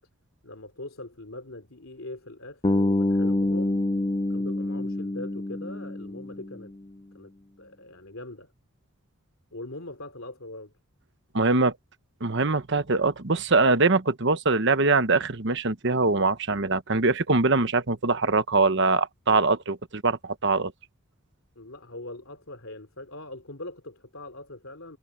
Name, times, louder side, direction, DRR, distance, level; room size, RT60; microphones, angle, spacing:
voice 1, 0.4-3.9 4.3-6.7 7.1-8.5 9.5-10.7 21.6-25.0, left 2 dB, 65° left, 3.5 m, -41 dB
Bass guitar, 2.6-6.7, left 1 dB, 20° left, 0.6 m, -26 dB
voice 2, 11.3-11.7 12.2-20.7, right 3 dB, 55° right, 1.2 m, -23 dB
head